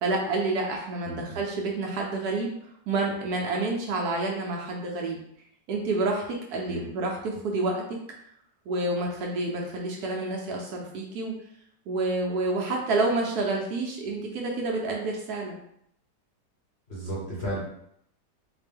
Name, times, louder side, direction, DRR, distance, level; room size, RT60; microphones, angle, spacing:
voice 1, 0.0-2.6 2.9-5.2 5.7-8.0 8.7-11.4 11.9-15.6, right 2 dB, 70° right, -1 dB, 1.1 m, -28 dB
voice 2, 1.0-1.4 6.7-6.9 16.9-17.6, right 1 dB, 45° left, -5 dB, 0.9 m, -33 dB
4.2 x 2.1 x 3.4 m, 0.72 s
omnidirectional pair, 1.9 m